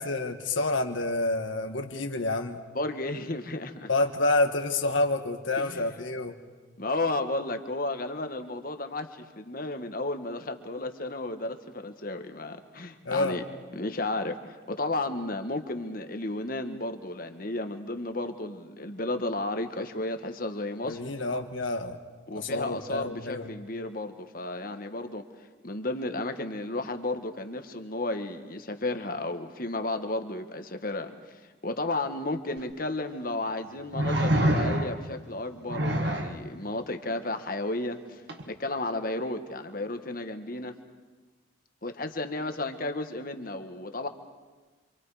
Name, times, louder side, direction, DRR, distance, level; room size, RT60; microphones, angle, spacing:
voice 1, 0.0-2.6 3.9-6.4 13.0-13.4 20.8-22.0 22.3-23.5, left 2 dB, 75° left, 5 dB, 1.5 m, -28 dB
voice 2, 2.7-3.9 5.6-5.9 6.8-13.4 13.7-21.0 22.3-25.2 25.6-40.8 41.8-44.1, left 2 dB, 45° left, 7 dB, 1.4 m, -33 dB
sound 1, 32.6-32.7 33.9-35.1 35.7-36.4 38.3-38.4, right 1 dB, 60° right, 1.9 m, -26 dB
27.5 x 26.0 x 4.9 m, 1.3 s
head